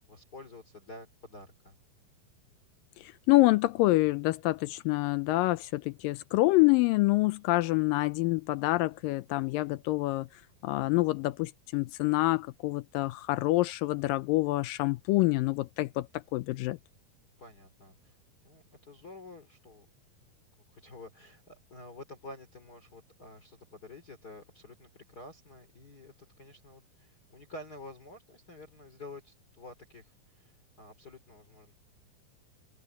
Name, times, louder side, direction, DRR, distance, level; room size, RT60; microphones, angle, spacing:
voice 1, 0.1-1.7 17.4-18.2 18.4-19.9 20.7-26.1 26.4-31.8, left 2 dB, 25° left, 3.3 m, -49 dB
voice 2, 3.0-10.3 10.6-16.8, left 20 dB, 80° left, 2.0 m, -27 dB
open air
omnidirectional pair, 4.4 m